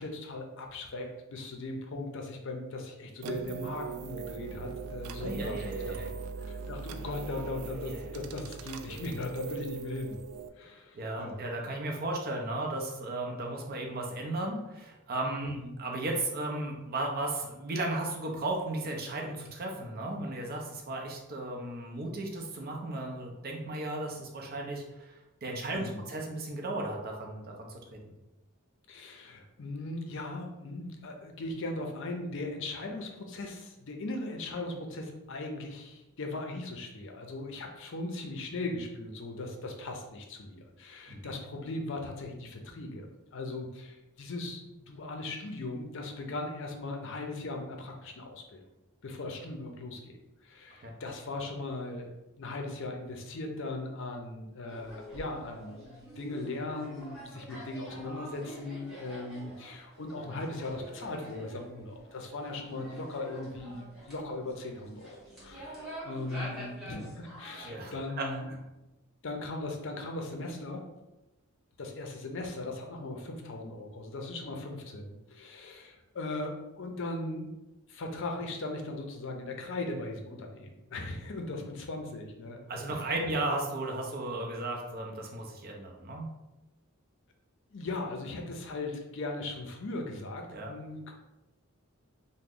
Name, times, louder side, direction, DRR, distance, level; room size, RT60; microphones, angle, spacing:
voice 1, 0.0-6.0 6.4-10.2 10.6-11.4 15.5-15.7 25.7-26.1 28.9-43.1 43.3-48.6 49.0-52.1 52.4-68.5 69.2-70.9 71.8-77.5 77.9-82.6 82.9-83.2 87.7-91.1, left 2 dB, 60° left, 3 dB, 0.5 m, -38 dB
sound 1, 3.2-10.5, right 5 dB, 90° right, 0.3 m, -40 dB
voice 2, 5.2-6.1 7.8-8.0 10.9-25.1 25.4-28.0 41.1-41.2 50.8-51.0 67.6-68.3 82.7-86.3 90.5-90.7, right 2 dB, 45° right, 1 dB, 0.6 m, -35 dB
sound 2, 54.7-67.7, right 1 dB, ahead, 1.1 m, -47 dB
3.0 x 2.1 x 3.7 m, 0.98 s
head